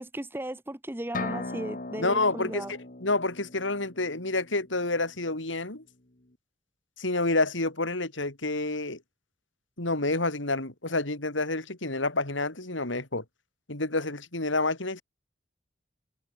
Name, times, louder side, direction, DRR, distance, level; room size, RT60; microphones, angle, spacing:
voice 1, 0.0-2.7, right 1 dB, 10° right, 1.1 m, -36 dB
sound 1, 1.1-4.9, left 2 dB, 45° left, 2.1 m, -38 dB
voice 2, 2.0-5.8 7.0-9.0 9.8-13.2 13.7-15.0, left 2 dB, 80° left, 4.3 m, -29 dB
head